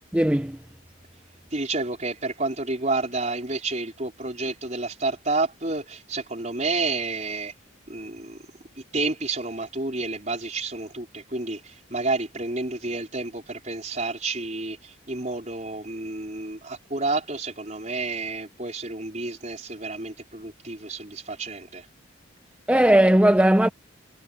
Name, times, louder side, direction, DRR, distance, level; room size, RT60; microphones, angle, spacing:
voice 1, 0.1-0.6 22.7-23.7, right 1 dB, 5° right, 0.6 m, -18 dB
voice 2, 1.5-7.5 7.9-8.4 8.9-21.9, right 3 dB, 35° right, 4.5 m, -30 dB
head